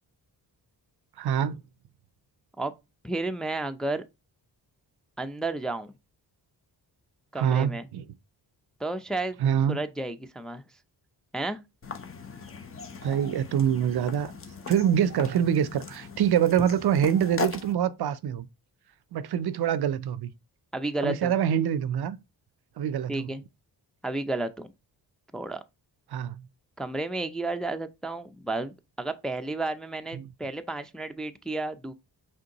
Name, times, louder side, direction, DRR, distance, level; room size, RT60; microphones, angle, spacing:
voice 1, 1.2-1.6 7.4-8.0 9.4-9.8 13.0-14.3 14.7-18.5 19.1-20.3 21.0-22.2 22.8-23.3 26.1-26.4 30.1-30.3, right 9 dB, 60° right, 0.5 m, -25 dB
voice 2, 3.0-4.0 5.2-5.9 7.3-7.9 8.8-9.4 9.7-10.6 11.3-11.6 20.7-21.3 23.1-23.4 24.0-24.7 25.3-25.6 26.8-31.9, right 2 dB, ahead, 0.4 m, -32 dB
sound 1, 11.8-17.7, left 4 dB, 30° left, 0.8 m, -38 dB
5.1 x 3.6 x 2.9 m
cardioid pair, 80°, 43 cm